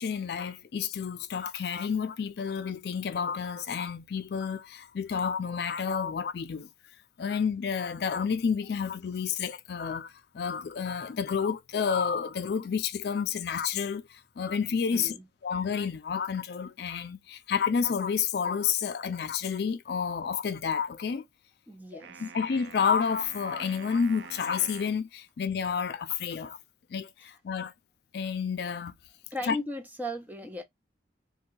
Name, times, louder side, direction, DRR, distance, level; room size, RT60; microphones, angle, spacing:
voice 1, 0.0-6.7 7.2-15.1 15.4-21.2 21.9-26.6 26.9-27.7 28.1-28.9 29.5-29.6, left 6 dB, 60° left, 0.4 m, -30 dB
voice 2, 14.9-15.2 21.7-22.3 29.3-30.6, equal, 10° right, 0.5 m, -37 dB
sound 1, 22.0-25.0, right 7 dB, 70° right, 0.4 m, -47 dB
2.7 x 2.2 x 3.8 m
head